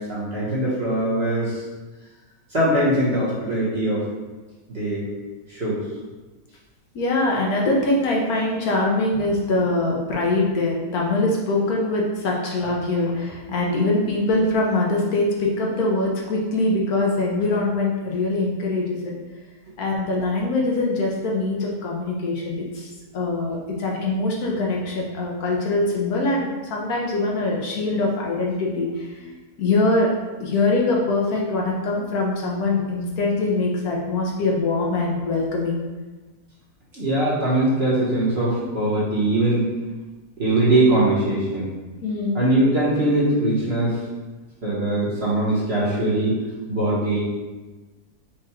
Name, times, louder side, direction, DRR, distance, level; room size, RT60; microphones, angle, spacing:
voice 1, 0.0-1.6 2.5-4.0 4.7-5.1 5.5-5.8 36.9-39.7 40.4-41.7 42.3-44.0 44.6-46.4 46.7-47.2, right 1 dB, 40° right, -7 dB, 1.2 m, -21 dB
voice 2, 6.9-19.1 19.8-29.3 29.6-30.1 30.4-35.8 42.0-42.4, left 2 dB, 70° left, -2 dB, 1.1 m, -23 dB
4.7 x 2.4 x 4.3 m, 1.2 s
omnidirectional pair, 1.8 m